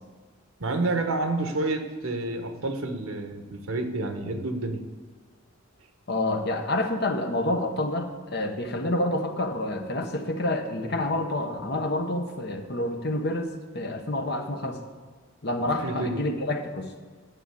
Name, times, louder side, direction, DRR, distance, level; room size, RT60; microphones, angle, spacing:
voice 1, 0.6-4.9 15.8-16.2, right 2 dB, 80° right, 6 dB, 1.2 m, -29 dB
voice 2, 6.1-14.8 15.4-16.9, left 1 dB, 50° left, 5 dB, 1.1 m, -28 dB
9.9 x 7.3 x 7.0 m, 1.5 s
head